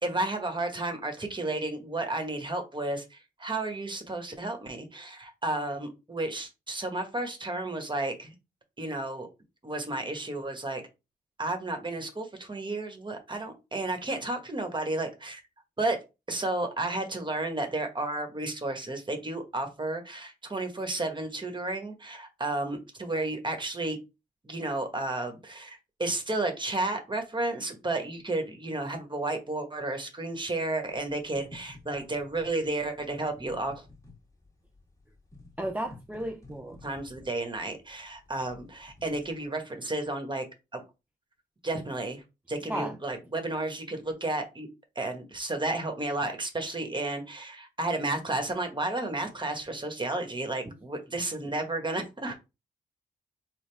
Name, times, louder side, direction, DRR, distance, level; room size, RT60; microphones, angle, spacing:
voice 1, 0.0-8.3 8.8-9.3 9.6-10.8 11.4-15.4 15.8-16.0 16.3-24.0 24.4-33.8 36.8-40.4 40.7-40.8 41.6-42.2 42.5-44.7 44.9-52.3, right 2 dB, 25° right, 1.3 m, -32 dB
sound 1, 30.9-39.5, left 2 dB, 15° left, 1.9 m, -53 dB
voice 2, 35.6-36.8 42.7-43.0 50.7-50.8 52.3-52.4, right 1 dB, 10° right, 0.5 m, -34 dB
4.1 x 2.3 x 3.4 m
supercardioid pair, 45°, 19 cm